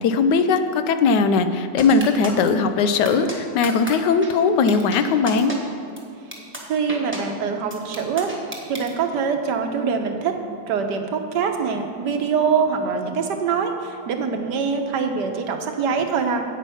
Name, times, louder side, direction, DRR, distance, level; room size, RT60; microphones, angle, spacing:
voice 1, 0.0-5.5, left 4 dB, 85° left, 9 dB, 1.3 m, -19 dB
sound 1, 1.8-2.5 3.0-3.3 3.6-3.9 4.2-4.3 4.7-5.0 5.3-5.6 6.0-6.1 6.3-6.6 6.9-7.2 7.7-8.9, right 1 dB, 10° right, 1.2 m, -32 dB
voice 2, 6.6-8.3 8.7-10.3 10.7-16.4, right 6 dB, 80° right, 5 dB, 1.5 m, -24 dB
8.9 x 8.5 x 5.6 m, 2.6 s
omnidirectional pair, 1.8 m